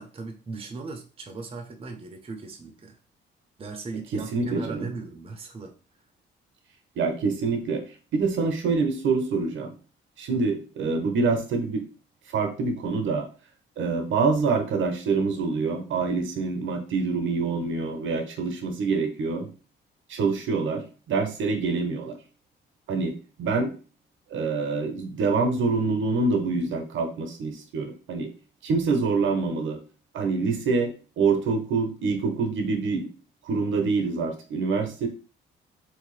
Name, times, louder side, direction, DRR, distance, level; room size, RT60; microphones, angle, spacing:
voice 1, 0.0-3.0 3.6-5.8 10.3-10.5, right 3 dB, 30° right, 4 dB, 0.7 m, -38 dB
voice 2, 4.1-4.9 7.0-7.8 8.1-9.7 10.2-11.8 12.3-13.3 13.8-19.5 20.1-22.2 22.9-23.1 23.4-23.7 24.3-28.3 28.6-29.8 30.1-33.1 33.5-35.1, right 4 dB, 75° right, 5 dB, 0.7 m, -26 dB
3.2 x 2.7 x 3.2 m, 0.36 s
cardioid pair, 90°, 20 cm